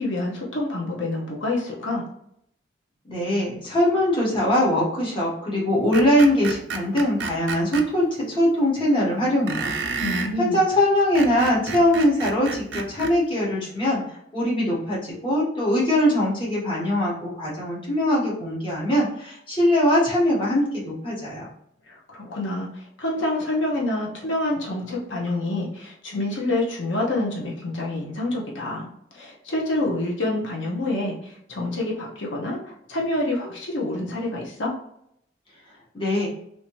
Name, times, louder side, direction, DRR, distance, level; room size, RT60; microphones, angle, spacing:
voice 1, 0.0-2.1 10.0-10.6 21.9-28.9 29.1-34.8, left 2 dB, 90° left, -2 dB, 0.9 m, -27 dB
voice 2, 3.1-9.7 10.4-14.0 14.3-21.5 35.9-36.3, left 1 dB, 30° left, -6 dB, 1.3 m, -22 dB
Screech, 5.9-7.9 9.5-10.3 11.0-13.2, right 4 dB, 75° right, 0.5 m, -30 dB
3.3 x 2.7 x 3.1 m, 0.72 s
head